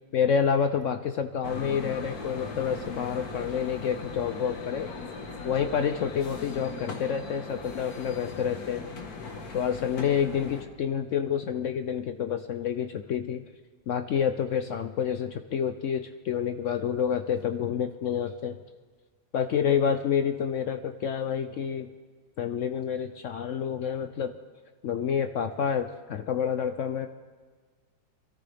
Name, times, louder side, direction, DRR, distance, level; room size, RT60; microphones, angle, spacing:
voice 1, 0.1-4.9 5.4-8.8 9.5-13.4 13.9-18.6 19.3-21.9 22.4-24.3 24.8-27.1, left 7 dB, 75° left, 7 dB, 0.7 m, -28 dB
sound 1, 1.4-10.6, left 3 dB, 55° left, 1.9 m, -39 dB
24.0 x 14.0 x 3.4 m, 1.5 s
omnidirectional pair, 1.9 m